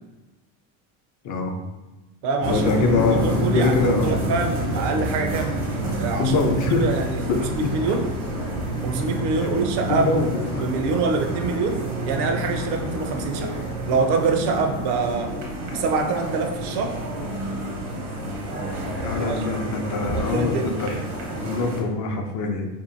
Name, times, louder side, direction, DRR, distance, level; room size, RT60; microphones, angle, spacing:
voice 1, 1.2-1.6 2.4-4.1 6.2-6.8 7.3-7.7 9.4-9.6 9.9-10.6 19.0-22.7, left 4 dB, 40° left, 3 dB, 0.6 m, -24 dB
voice 2, 2.2-5.6 5.9-8.1 8.8-10.1 10.6-11.8 12.1-13.5 13.9-15.3 15.7-17.0 19.2-19.4 20.0-20.7, right 4 dB, 60° right, 5 dB, 0.6 m, -25 dB
sound 1, 2.4-21.8, right 1 dB, 80° right, 1.0 m, -28 dB
2.7 x 2.6 x 2.5 m, 1.1 s
supercardioid pair, 85°, 47 cm